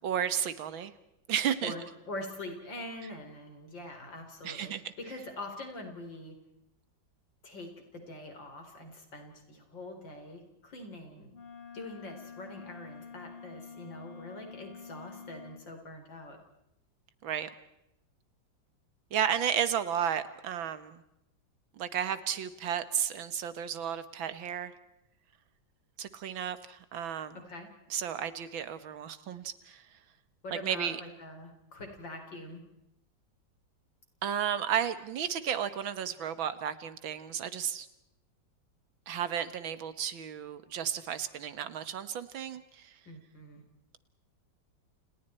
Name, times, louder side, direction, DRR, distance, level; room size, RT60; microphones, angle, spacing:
voice 1, 0.0-0.9 1.3-1.7 4.4-4.9 17.2-17.5 19.1-21.0 21.8-24.7 26.0-27.4 27.9-29.8 30.5-31.0 34.2-37.9 39.1-43.0, right 8 dB, 85° right, 13 dB, 2.1 m, -33 dB
voice 2, 1.6-6.3 7.4-11.3 11.7-16.4 27.3-27.7 30.4-32.6 43.1-43.6, left 1 dB, 70° left, 4 dB, 4.7 m, -44 dB
Wind instrument woodwind instrument, 11.3-15.7, left 5 dB, 40° left, 0.8 m, -48 dB
29.5 x 29.5 x 4.4 m, 0.84 s
omnidirectional pair, 2.1 m